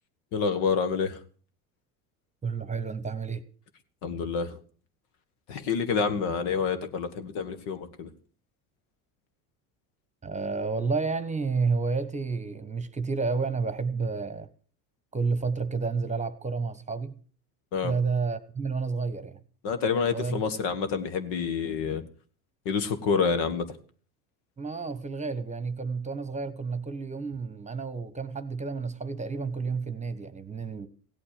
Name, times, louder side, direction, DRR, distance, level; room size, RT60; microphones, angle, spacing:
voice 1, 0.3-1.2 4.0-4.6 5.5-8.1 17.7-17.9 19.6-22.0 22.7-23.7, left 5 dB, 65° left, 1.8 m, -28 dB
voice 2, 2.4-3.4 10.2-14.5 15.1-17.2 17.8-19.4 20.1-20.5 24.6-30.9, right 4 dB, 15° right, 1.2 m, -30 dB
16.5 x 8.7 x 6.7 m
hypercardioid pair, 85°, 43 cm